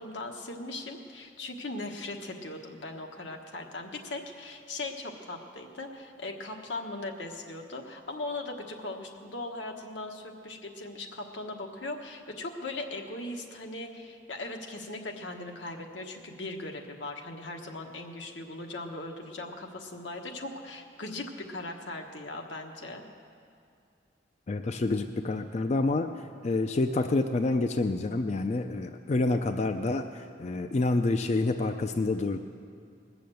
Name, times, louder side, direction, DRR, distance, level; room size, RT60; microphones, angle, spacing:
voice 1, 0.0-23.0, left 2 dB, 85° left, 2 dB, 1.3 m, -39 dB
voice 2, 24.5-26.1 26.4-32.4, left 2 dB, 40° left, 7 dB, 0.4 m, -28 dB
20.0 x 7.0 x 7.8 m, 2.4 s
head